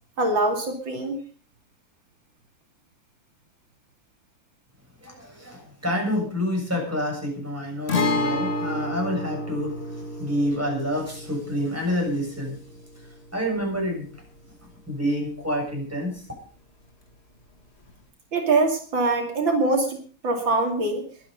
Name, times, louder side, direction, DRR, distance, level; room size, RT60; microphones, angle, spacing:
voice 1, 0.2-1.2 18.3-20.0 20.2-21.0, right 3 dB, 75° right, 2 dB, 3.4 m, -23 dB
voice 2, 5.0-12.6 13.0-14.1 14.6-16.2, equal, 5° right, 0 dB, 7.1 m, -28 dB
Guitar, 7.9-15.5 15.8-15.9 17.9-18.0, left 2 dB, 35° left, 1.8 m, -31 dB
22.5 x 9.7 x 5.3 m, 0.42 s
omnidirectional pair, 2.1 m